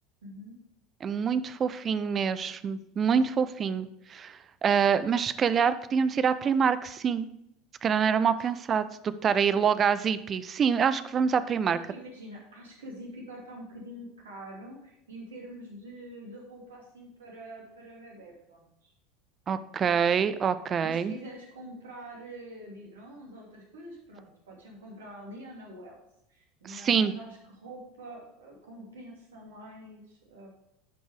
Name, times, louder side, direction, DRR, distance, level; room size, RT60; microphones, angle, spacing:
voice 1, 0.2-0.6 11.6-18.9 20.8-26.0 26.3-30.5, right 1 dB, 70° right, -1 dB, 2.7 m, -45 dB
voice 2, 1.0-7.3 7.8-8.8 9.2-11.8 19.5-21.1 26.7-27.1, right 7 dB, 30° right, 14 dB, 0.5 m, -26 dB
11.0 x 5.4 x 4.6 m, 0.81 s
figure-of-eight pair, 75°, 0 cm